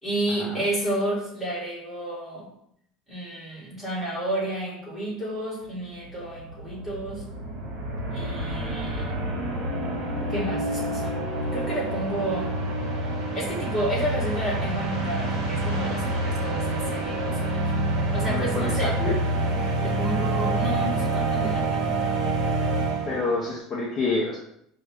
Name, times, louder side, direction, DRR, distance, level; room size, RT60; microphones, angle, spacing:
voice 1, 0.0-2.5 3.1-7.3 8.1-9.2 10.3-11.2 11.5-12.5 13.3-17.6 18.1-19.0 19.8-21.9, right 1 dB, ahead, -8 dB, 1.7 m, -31 dB
sound 1, 5.8-5.9 6.0-23.5, right 2 dB, 50° right, 1.2 m, -27 dB
voice 2, 18.3-18.7 19.0-19.1 23.1-24.4, left 3 dB, 30° left, -5 dB, 0.7 m, -27 dB
5.0 x 2.3 x 3.4 m, 0.71 s
cardioid pair, 155°, 0 cm